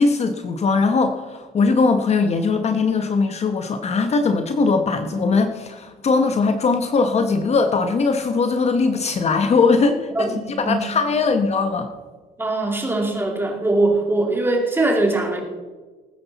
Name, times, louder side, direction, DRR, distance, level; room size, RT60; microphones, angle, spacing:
voice 1, 0.0-11.9, left 4 dB, 40° left, 7 dB, 1.0 m, -20 dB
voice 2, 12.4-15.4, right 2 dB, 15° right, 1 dB, 2.7 m, -21 dB
19.5 x 9.7 x 4.1 m, 1.4 s
cardioid pair, 110°, 17 cm